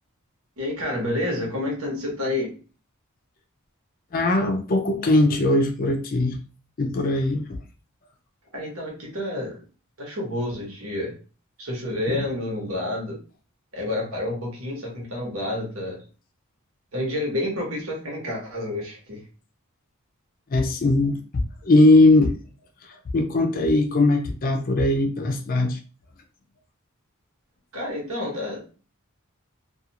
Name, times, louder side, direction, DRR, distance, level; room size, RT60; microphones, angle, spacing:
voice 1, 0.6-2.5 8.5-9.6 10.0-11.1 11.6-13.2 13.7-16.0 16.9-19.2 27.7-28.6, left 1 dB, 70° right, 1.1 m, -29 dB
voice 2, 4.1-6.4 6.8-7.4 12.1-12.2 20.5-21.2 21.6-22.3 23.1-25.8, left 2 dB, 40° left, 0.4 m, -19 dB
2.4 x 2.3 x 2.8 m
head